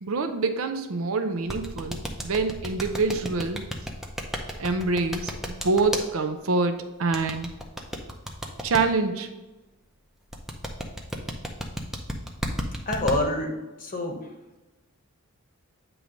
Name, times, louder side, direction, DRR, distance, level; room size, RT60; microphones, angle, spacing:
voice 1, 0.0-3.6 4.6-7.5 8.6-9.3, right 3 dB, 70° right, 7 dB, 0.6 m, -26 dB
sound 1, 1.5-6.0 7.1-8.8 10.3-13.2, equal, ahead, 0.6 m, -32 dB
voice 2, 12.9-13.5 13.8-14.2, left 1 dB, 40° left, 2 dB, 0.9 m, -26 dB
8.8 x 3.1 x 5.1 m, 1.1 s
head